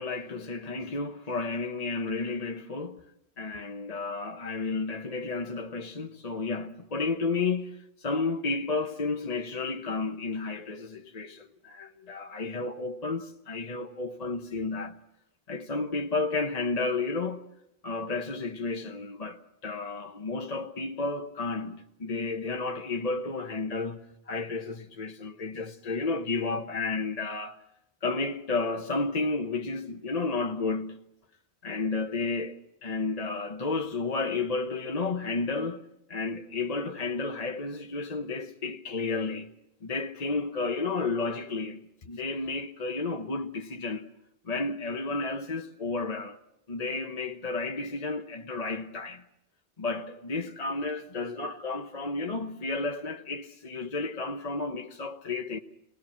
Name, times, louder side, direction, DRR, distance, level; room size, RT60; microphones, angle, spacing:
voice 1, 0.0-3.0 3.4-15.0 15.5-17.4 17.8-27.6 28.0-31.0 31.6-35.8 36.1-39.5 39.8-44.1 44.4-46.4 46.7-49.2 49.8-55.6, left 3 dB, 40° left, 1.1 m, -32 dB
28.0 x 20.0 x 7.4 m
omnidirectional pair, 1.1 m